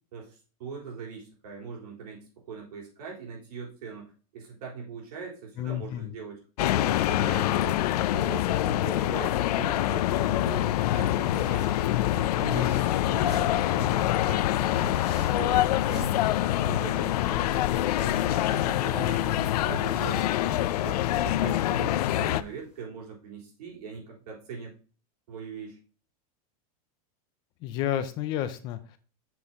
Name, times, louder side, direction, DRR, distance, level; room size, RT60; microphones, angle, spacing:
voice 1, 0.1-2.2 2.4-7.9 8.1-11.6 12.0-16.2 16.5-17.7 18.0-24.7 25.3-25.8, right 5 dB, 85° right, -1 dB, 4.1 m, -41 dB
voice 2, 5.6-6.1 19.0-19.4 27.6-29.0, left 11 dB, 25° left, 11 dB, 0.4 m, -31 dB
sound 1, 6.6-22.4, left 13 dB, 85° left, 0.5 m, -25 dB
sound 2, 10.2-22.8, equal, 5° right, 2.9 m, -48 dB
8.5 x 6.3 x 2.9 m, 0.37 s
supercardioid pair, 180°, 19 cm